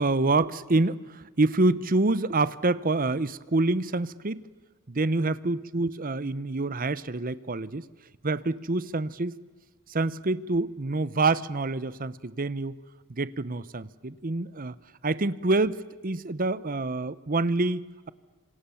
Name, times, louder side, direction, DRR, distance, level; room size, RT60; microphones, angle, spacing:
voice 1, 0.0-4.4 4.9-7.9 8.2-9.4 9.9-12.7 13.1-14.7 15.0-18.1, right 2 dB, 40° right, 16 dB, 0.9 m, -27 dB
27.5 x 26.5 x 7.2 m, 1.4 s
head